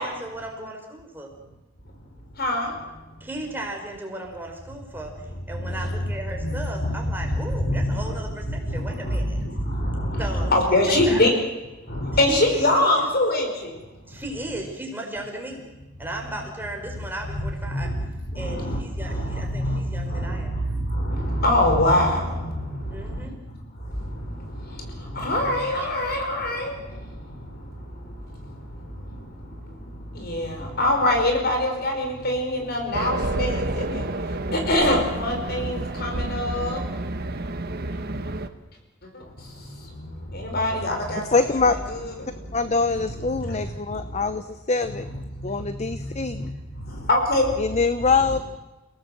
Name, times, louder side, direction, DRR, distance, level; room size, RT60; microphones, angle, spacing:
voice 1, 0.0-1.3 3.2-9.4 10.2-10.5 10.9-11.2 12.3-13.1 14.1-15.6 16.0-17.9 18.3-20.5 22.9-23.4 25.8-25.9, right 1 dB, 10° right, 1 dB, 5.0 m, -35 dB
voice 2, 2.3-3.3 5.5-6.0 6.4-8.1 8.5-11.3 11.9-13.8 14.1-14.2 16.8-16.9 17.3-36.8 39.0-42.5 42.9-44.4 45.0-47.8, left 1 dB, 55° left, 3 dB, 5.4 m, -26 dB
Race car auto racing, 32.9-38.5, right 2 dB, 55° right, 1.4 m, -29 dB
voice 3, 41.2-41.8 42.5-45.0 45.4-46.5 47.6-48.4, left 4 dB, 35° left, 10 dB, 0.9 m, -24 dB
29.5 x 18.0 x 7.8 m, 1.1 s
head